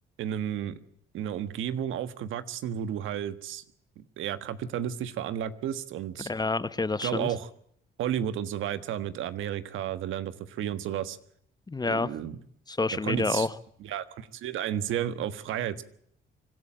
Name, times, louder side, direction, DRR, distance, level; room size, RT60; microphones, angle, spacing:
voice 1, 0.2-0.8 1.1-3.6 4.0-6.3 7.0-7.5 8.0-11.2 11.8-12.4 13.0-13.5 13.8-15.8, right 10 dB, 85° right, 12 dB, 1.5 m, -32 dB
voice 2, 6.2-7.3 11.7-12.1 12.7-13.5, left 3 dB, 20° left, 16 dB, 0.9 m, -28 dB
25.5 x 12.5 x 8.9 m, 0.68 s
cardioid pair, 90°, 20 cm